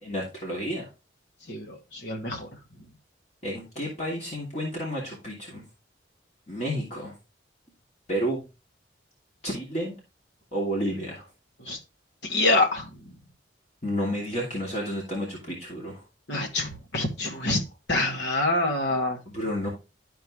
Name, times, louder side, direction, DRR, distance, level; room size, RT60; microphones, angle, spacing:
voice 1, 0.0-0.8 3.4-5.6 6.5-7.1 8.1-8.5 9.4-10.0 10.5-11.2 13.8-16.0 19.3-19.7, equal, 35° left, 2.9 m, -31 dB
voice 2, 1.5-2.5 11.6-11.8 12.2-12.9 16.3-17.6 17.9-19.2, left 2 dB, 65° left, 2.0 m, -26 dB
13.0 x 4.7 x 3.1 m
head